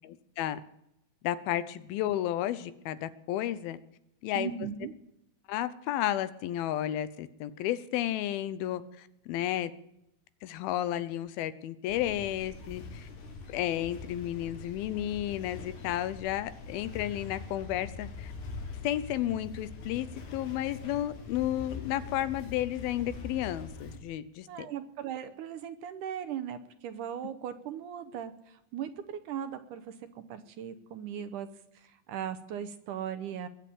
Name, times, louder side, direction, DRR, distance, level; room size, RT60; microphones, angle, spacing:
voice 1, 0.0-0.6 1.2-3.8 4.2-4.5 5.5-9.7 10.4-13.1 13.5-18.3 18.8-20.1 20.3-24.7, left 12 dB, 90° left, 14 dB, 2.7 m, -32 dB
voice 2, 4.4-4.9 24.5-31.5 31.7-33.5, right 9 dB, 70° right, 9 dB, 2.2 m, -38 dB
sound 1, 11.9-24.0, left 4 dB, 60° left, 3.1 m, -43 dB
22.0 x 7.7 x 8.6 m, 0.82 s
omnidirectional pair, 4.2 m